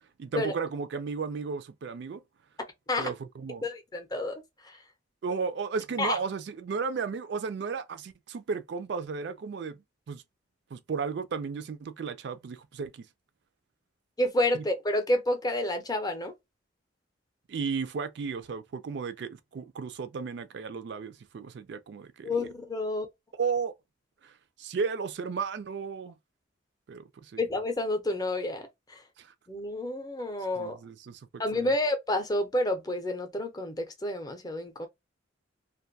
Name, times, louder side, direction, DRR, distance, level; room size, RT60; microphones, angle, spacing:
voice 1, 0.2-2.2 3.0-3.7 5.2-9.8 10.1-10.2 10.7-13.0 14.5-14.6 17.5-22.3 23.4-23.7 24.2-24.3 24.6-26.1 26.9-27.4 29.2-29.3 30.6-31.7, right 5 dB, 60° right, 0.4 m, -34 dB
voice 2, 3.6-4.8 6.0-6.2 14.2-16.3 22.2-23.1 27.4-29.0 29.5-30.8 31.4-34.9, left 1 dB, 20° left, 0.6 m, -29 dB
2.5 x 2.3 x 2.6 m
head